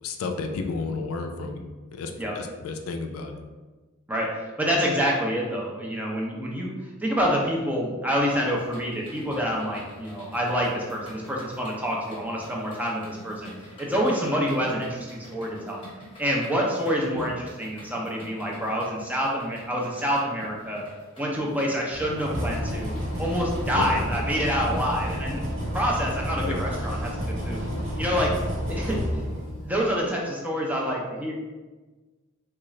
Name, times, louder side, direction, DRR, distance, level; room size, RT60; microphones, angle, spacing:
voice 1, 0.0-3.4 17.1-17.3 23.8-24.0 26.4-26.6 28.9-29.0, left 3 dB, 85° left, 5 dB, 0.4 m, -32 dB
voice 2, 4.1-6.7 7.0-13.5 13.8-15.8 16.2-20.8 21.2-27.1 27.4-27.6 28.0-28.3 28.7-29.0 29.6-31.3, equal, 10° right, -2 dB, 0.5 m, -27 dB
sound 1, 8.3-25.2, equal, 25° left, 1.0 m, -48 dB
sound 2, 21.9-29.9, equal, 70° right, 1.3 m, -30 dB
3.6 x 2.4 x 3.1 m, 1.3 s
head